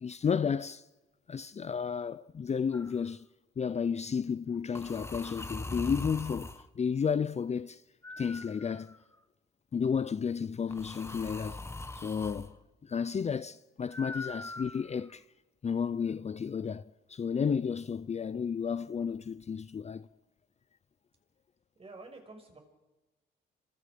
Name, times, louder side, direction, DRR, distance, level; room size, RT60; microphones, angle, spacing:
voice 1, 0.0-0.8 1.3-3.3 3.6-7.8 8.2-9.0 9.7-11.6 12.0-12.6 12.8-15.2 15.6-16.8 17.1-20.1, left 6 dB, 35° left, 0.6 m, -32 dB
sound 1, 2.7-3.0 4.7-6.7 8.0-9.1 10.7-12.5 13.9-15.1, left 2 dB, 15° left, 1.5 m, -42 dB
voice 2, 21.7-22.6, right 3 dB, 30° right, 6.4 m, -49 dB
27.5 x 25.5 x 5.2 m
cardioid pair, 90°, 20 cm